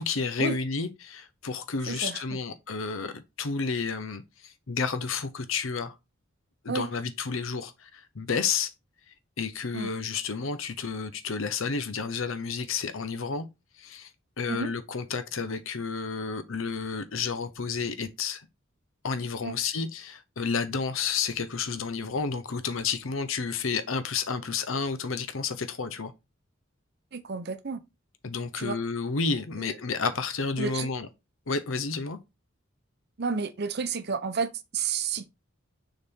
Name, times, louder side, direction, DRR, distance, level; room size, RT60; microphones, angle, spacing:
voice 1, 0.0-5.9 6.6-8.7 9.4-13.5 13.8-14.1 14.4-18.5 19.0-26.1 28.2-31.1 31.5-32.2, left 5 dB, 75° left, 0.8 m, -31 dB
voice 2, 1.9-2.4 6.7-6.9 9.7-9.9 14.5-14.7 19.4-19.5 27.1-27.8 28.6-28.7 29.6-29.7 30.6-30.9 33.2-35.2, right 5 dB, 50° right, 0.7 m, -31 dB
6.8 x 3.9 x 3.6 m
head